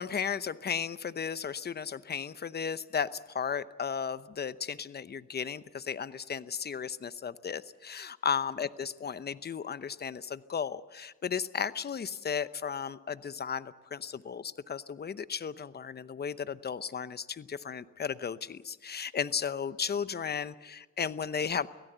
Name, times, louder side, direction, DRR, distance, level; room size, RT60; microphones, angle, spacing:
voice 1, 0.0-21.7, left 7 dB, 35° left, 14 dB, 0.9 m, -35 dB
25.0 x 17.0 x 8.1 m, 1.2 s
cardioid pair, 90°, 30 cm